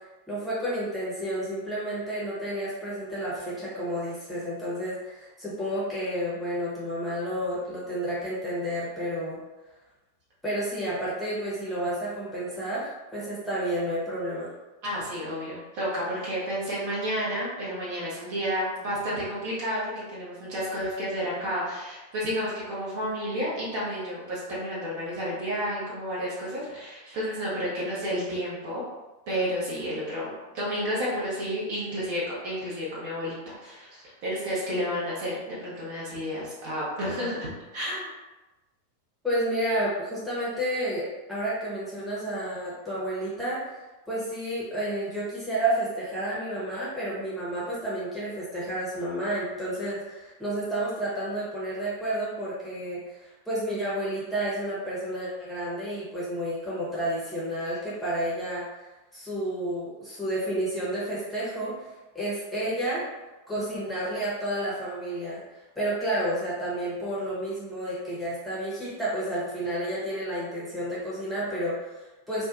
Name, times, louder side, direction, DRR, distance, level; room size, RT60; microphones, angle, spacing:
voice 1, 0.3-9.4 10.4-14.5 39.2-43.7 44.1-58.6 59.1-63.0 63.5-65.4 65.8-72.5, right 1 dB, ahead, -9 dB, 1.0 m, -31 dB
voice 2, 14.8-28.8 29.3-38.1, equal, 45° right, -7 dB, 1.0 m, -31 dB
2.4 x 2.3 x 2.5 m, 1.1 s
figure-of-eight pair, 90°, 0 cm